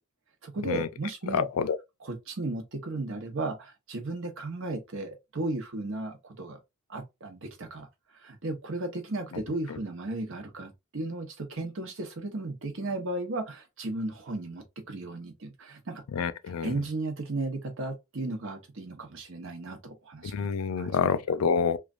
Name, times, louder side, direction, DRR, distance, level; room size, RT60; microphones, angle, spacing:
voice 1, 0.4-1.5 2.0-6.6 6.9-16.0 16.6-20.3 20.8-21.1, right 2 dB, 60° right, 0.9 m, -35 dB
voice 2, 1.3-1.8 16.1-16.8 20.2-21.8, left 6 dB, 75° left, 0.4 m, -27 dB
3.1 x 2.3 x 2.4 m
head